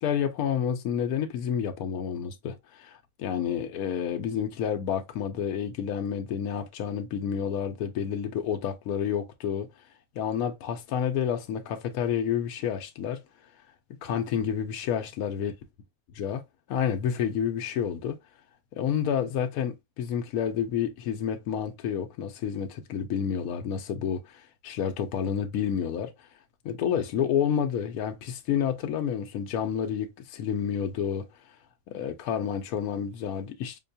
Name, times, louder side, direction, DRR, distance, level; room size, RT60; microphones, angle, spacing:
voice 1, 0.0-9.7 10.2-13.2 14.0-15.5 16.1-16.4 16.7-18.2 18.8-26.1 26.6-31.3 31.9-33.8, left 8 dB, 80° left, 1.1 m, -29 dB
5.6 x 2.2 x 2.7 m
omnidirectional pair, 1.5 m